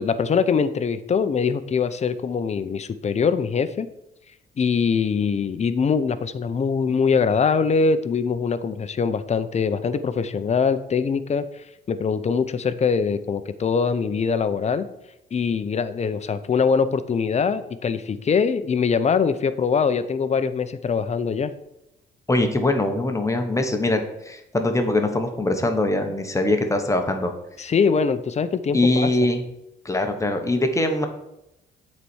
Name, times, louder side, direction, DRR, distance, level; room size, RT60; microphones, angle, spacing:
voice 1, 0.0-3.9 4.6-11.4 11.9-14.9 15.3-21.5 27.6-29.1, left 5 dB, 35° left, 12 dB, 0.7 m, -23 dB
voice 2, 22.3-27.3 28.7-29.4 29.8-31.0, left 2 dB, 15° left, 5 dB, 1.2 m, -22 dB
8.1 x 4.2 x 6.3 m, 0.88 s
cardioid pair, 85°, 19 cm